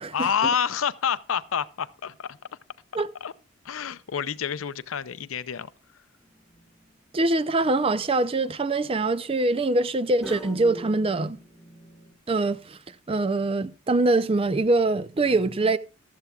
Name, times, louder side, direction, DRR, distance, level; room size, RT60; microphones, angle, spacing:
voice 1, 0.1-2.4 3.2-3.3 3.6-5.7, left 7 dB, 80° left, 0.6 m, -28 dB
sound 1, 6.3-6.8 7.4-7.9 10.2-12.1, equal, ahead, 1.9 m, -43 dB
voice 2, 7.1-11.4 12.3-12.8 13.1-15.8, right 2 dB, 25° right, 0.5 m, -23 dB
15.0 x 12.5 x 2.4 m
head